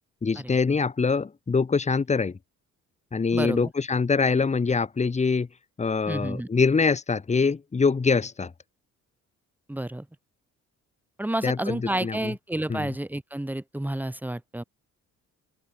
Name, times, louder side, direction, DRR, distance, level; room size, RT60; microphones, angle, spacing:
voice 1, 0.2-2.4 3.1-5.5 5.8-8.5 11.4-12.3 12.7-13.0, left 4 dB, 25° left, 1.1 m, -24 dB
voice 2, 3.3-3.7 6.1-6.5 9.7-10.0 11.2-14.6, right 1 dB, 5° right, 1.4 m, -30 dB
open air
cardioid pair, 90°, 30 cm